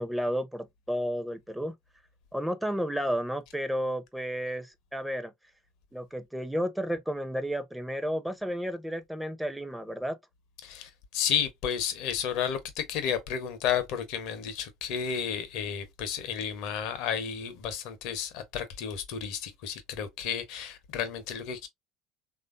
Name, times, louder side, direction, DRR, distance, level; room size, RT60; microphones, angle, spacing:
voice 1, 0.0-1.8 2.3-5.3 5.9-10.2, equal, 5° right, 0.5 m, -32 dB
voice 2, 10.6-21.7, left 8 dB, 65° left, 0.7 m, -32 dB
3.3 x 2.5 x 2.4 m
hypercardioid pair, 65°, 0 cm